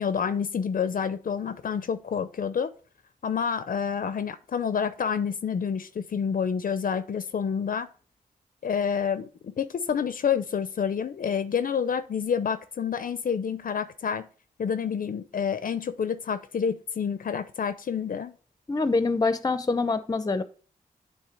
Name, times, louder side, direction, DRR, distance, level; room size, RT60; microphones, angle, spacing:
voice 1, 0.0-2.7 3.2-7.9 8.6-14.3 14.6-18.3, left 7 dB, 65° left, 12 dB, 0.6 m, -28 dB
voice 2, 18.7-20.4, left 3 dB, 25° left, 12 dB, 0.7 m, -25 dB
8.8 x 3.3 x 4.6 m, 0.39 s
wide cardioid pair, 85°, 15 cm